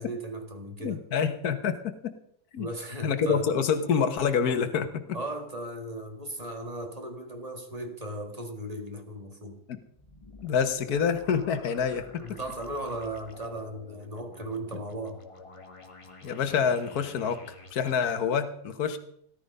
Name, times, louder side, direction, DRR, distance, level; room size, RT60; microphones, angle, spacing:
voice 1, 0.0-1.0 2.6-3.5 5.1-9.6 12.2-15.2, right 1 dB, 25° right, 5 dB, 2.1 m, -37 dB
voice 2, 0.8-2.1 2.5-2.7 3.0-5.0 9.7-9.8 10.4-12.2 16.2-17.4 17.7-19.0, left 6 dB, 70° left, 8 dB, 1.7 m, -27 dB
sound 1, 9.9-18.1, left 2 dB, 20° left, 1.3 m, -49 dB
17.5 x 12.0 x 5.5 m, 0.68 s
omnidirectional pair, 1.7 m